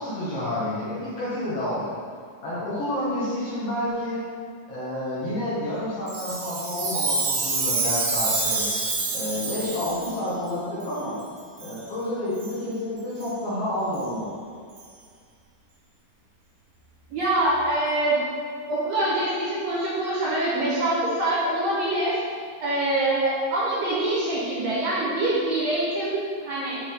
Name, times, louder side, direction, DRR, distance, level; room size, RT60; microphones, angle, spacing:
voice 1, 0.0-1.9 2.4-4.2 4.7-8.7 9.1-11.2 11.6-14.4, left 1 dB, 60° left, -9 dB, 1.7 m, -29 dB
Chime, 6.1-10.2 10.8-10.9 11.6-11.8 12.3-12.5 13.2-13.3 13.9-14.0 14.8-14.9, right 3 dB, 80° right, 2.8 m, -27 dB
voice 2, 17.1-18.2 18.7-22.2 22.6-26.8, right 1 dB, 60° right, -8 dB, 2.0 m, -24 dB
7.3 x 3.8 x 3.6 m, 2.1 s
omnidirectional pair, 4.0 m